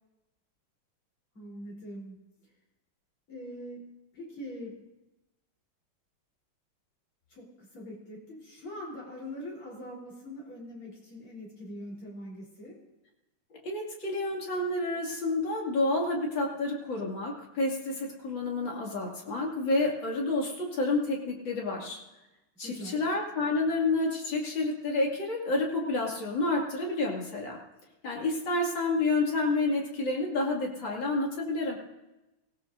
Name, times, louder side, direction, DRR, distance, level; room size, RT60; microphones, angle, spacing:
voice 1, 1.3-2.2 3.3-3.8 4.1-4.8 7.3-12.8 22.6-23.0, equal, 80° left, -3 dB, 4.8 m, -42 dB
voice 2, 13.6-22.0 22.6-27.6 28.0-31.8, left 2 dB, 60° left, -1 dB, 3.1 m, -29 dB
24.5 x 16.5 x 2.6 m, 1.0 s
omnidirectional pair, 2.3 m